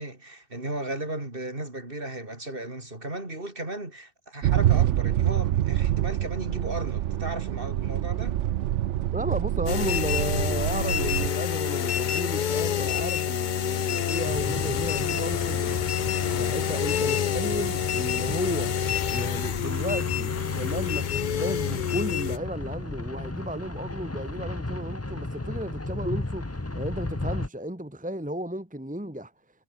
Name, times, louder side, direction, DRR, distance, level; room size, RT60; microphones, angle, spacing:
voice 1, 0.0-8.4, right 1 dB, 50° right, 5.2 m, -35 dB
sound 1, 4.4-11.3, right 12 dB, 90° right, 1.0 m, -26 dB
voice 2, 9.1-15.8 16.4-18.8 19.1-26.5 26.7-29.3, right 1 dB, 5° right, 1.6 m, -34 dB
sound 2, 9.7-22.4, left 9 dB, 50° left, 0.7 m, -27 dB
sound 3, 14.3-27.5, left 2 dB, 15° left, 1.0 m, -35 dB
omnidirectional pair, 1.2 m